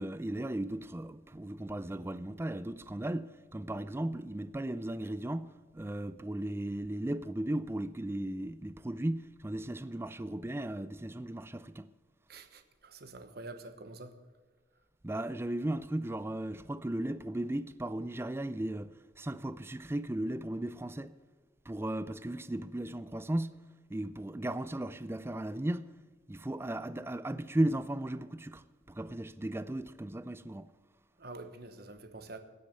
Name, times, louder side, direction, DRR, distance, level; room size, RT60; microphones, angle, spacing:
voice 1, 0.0-11.9 15.0-21.1 21.7-23.6 23.9-25.9 26.3-30.7, right 1 dB, 15° right, 0.4 m, -36 dB
voice 2, 12.3-14.1 31.2-32.4, right 2 dB, 55° right, 1.1 m, -47 dB
17.0 x 6.6 x 6.7 m
head